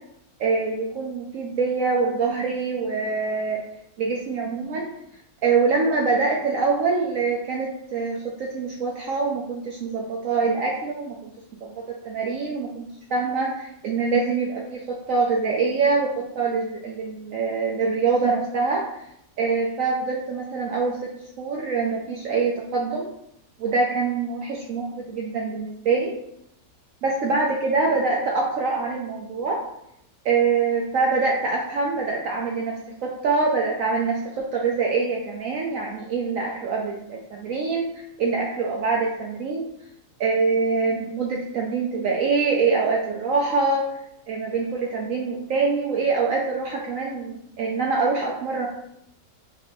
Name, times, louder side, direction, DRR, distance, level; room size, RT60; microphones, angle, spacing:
voice 1, 0.4-3.6 4.0-4.9 5.4-11.3 11.6-18.8 19.4-21.1 21.4-23.1 23.6-26.1 27.0-29.6 30.2-37.8 38.2-39.6 40.2-43.9 44.3-48.7, right 4 dB, 85° right, -2 dB, 0.7 m, -24 dB
5.1 x 2.7 x 2.6 m, 0.77 s
omnidirectional pair, 2.0 m